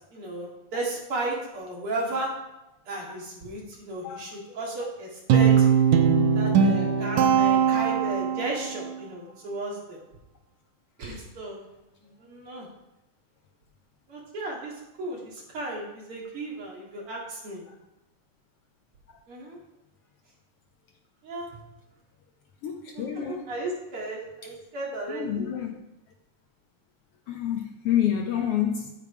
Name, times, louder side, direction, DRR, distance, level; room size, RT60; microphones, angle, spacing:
voice 1, 0.1-2.3 2.9-5.7 6.3-10.0 11.0-11.7 12.0-12.7 14.1-17.6 19.3-19.6 21.2-21.5 22.9-25.5, right 2 dB, 45° right, -3 dB, 2.8 m, -34 dB
voice 2, 4.0-4.4 17.7-17.8 22.6-23.5 25.1-25.8 27.3-28.9, left 10 dB, 75° left, 3 dB, 1.4 m, -28 dB
Guitar, 5.3-8.6, right 7 dB, 75° right, 2.3 m, -20 dB
8.6 x 8.5 x 4.8 m, 0.92 s
omnidirectional pair, 3.6 m